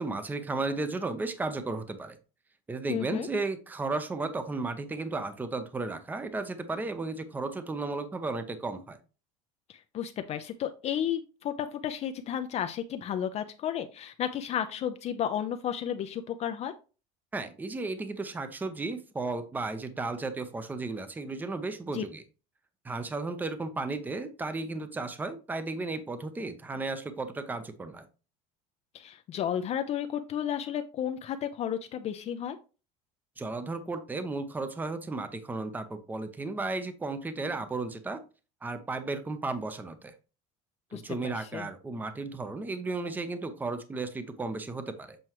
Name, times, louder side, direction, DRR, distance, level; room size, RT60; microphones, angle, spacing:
voice 1, 0.0-2.2 2.7-9.0 17.3-22.2 22.8-28.1 33.4-38.2 38.6-40.1 40.9-45.2, right 3 dB, 10° right, 10 dB, 0.7 m, -34 dB
voice 2, 2.9-3.3 9.7-16.7 21.9-22.0 28.9-32.6 40.9-41.7, left 9 dB, 40° left, 8 dB, 0.5 m, -33 dB
7.7 x 4.4 x 3.0 m, 0.33 s
cardioid pair, 130°, 18 cm